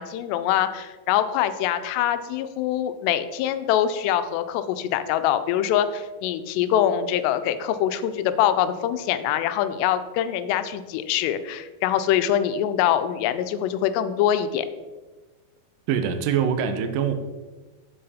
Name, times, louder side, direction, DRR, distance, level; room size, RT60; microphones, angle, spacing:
voice 1, 0.0-14.7, left 10 dB, 90° left, 11 dB, 2.7 m, -24 dB
voice 2, 15.9-17.1, right 8 dB, 80° right, 7 dB, 2.0 m, -23 dB
7.6 x 7.4 x 4.2 m, 1.2 s
omnidirectional pair, 4.8 m